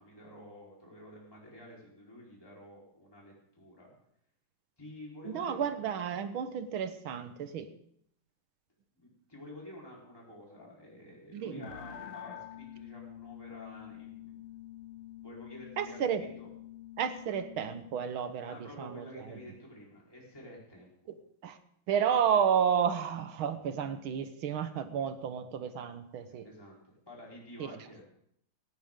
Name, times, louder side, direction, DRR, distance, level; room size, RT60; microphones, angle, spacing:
voice 1, 0.0-3.9 4.8-5.7 8.9-14.5 15.2-16.0 16.4-16.5 18.5-21.1 26.4-26.8 27.1-28.0, left 1 dB, 10° left, -4 dB, 4.1 m, -50 dB
voice 2, 5.3-7.7 11.3-11.7 15.8-16.2 17.0-19.4 21.1-21.2 21.4-21.6 21.9-26.5 27.6-27.7, right 8 dB, 75° right, 10 dB, 1.9 m, -31 dB
sound 1, 11.6-18.0, left 12 dB, 80° left, 1.7 m, -47 dB
18.0 x 14.5 x 3.7 m, 0.71 s
omnidirectional pair, 2.3 m